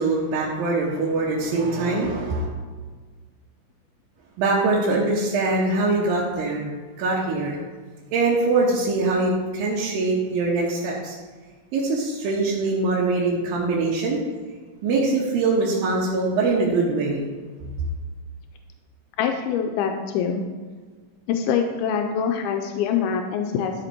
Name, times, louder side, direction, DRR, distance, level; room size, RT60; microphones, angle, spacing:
voice 1, 0.0-2.5 4.4-6.7 7.0-7.6 8.1-11.2 11.7-14.2 14.8-17.3, right 3 dB, 75° right, -6 dB, 2.9 m, -23 dB
voice 2, 19.2-20.4 21.3-23.7, left 7 dB, 90° left, 5 dB, 2.5 m, -24 dB
12.0 x 5.8 x 4.5 m, 1.4 s
omnidirectional pair, 4.3 m